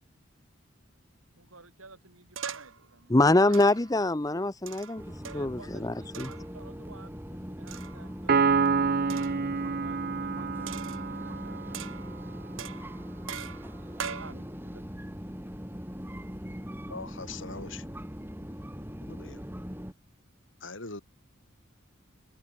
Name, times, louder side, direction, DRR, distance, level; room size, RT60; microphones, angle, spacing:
voice 1, 1.4-3.6 5.3-9.1 9.5-12.0 13.8-15.0, right 3 dB, 85° right, 6.3 m, -52 dB
sound 1, 2.4-2.8 3.5-4.0 4.7-5.6 6.1-6.5 7.7-8.2 9.1-9.5 10.7-11.3 11.7-12.2 12.6-14.3, right 7 dB, 70° right, 1.6 m, -41 dB
voice 2, 3.1-5.0 5.3-6.3, left 2 dB, 15° left, 0.7 m, -24 dB
sound 2, 5.0-19.9, equal, 10° right, 4.7 m, -40 dB
Piano, 8.3-11.9, right 5 dB, 45° right, 0.5 m, -27 dB
voice 3, 16.9-17.8 19.0-19.4 20.6-21.0, left 3 dB, 65° left, 4.2 m, -41 dB
head